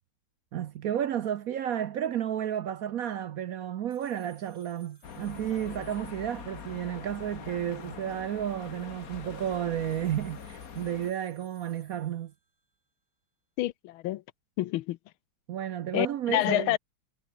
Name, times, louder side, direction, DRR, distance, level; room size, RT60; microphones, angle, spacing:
voice 1, 0.5-12.3 15.5-16.8, right 10 dB, 65° right, 0.8 m, -32 dB
sound 1, 3.9-6.8 9.9-12.8, right 3 dB, 85° right, 8.4 m, -63 dB
sound 2, 5.0-11.1, left 7 dB, 45° left, 1.7 m, -44 dB
voice 2, 13.6-14.2 14.6-15.0 15.9-16.8, left 16 dB, 85° left, 1.5 m, -28 dB
omnidirectional pair, 2.2 m